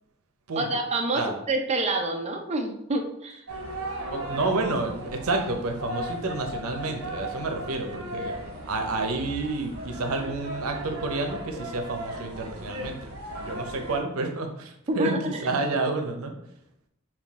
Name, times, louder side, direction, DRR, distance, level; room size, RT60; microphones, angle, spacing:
voice 1, 0.6-3.4 14.9-15.4, right 2 dB, 30° right, 3 dB, 0.5 m, -27 dB
sound 1, 3.5-14.0, right 1 dB, 75° right, 1.1 m, -37 dB
voice 2, 4.1-8.3 8.6-13.0 13.4-15.1 15.4-16.3, right 3 dB, 90° right, 4 dB, 0.7 m, -29 dB
5.7 x 2.4 x 3.5 m, 0.77 s
head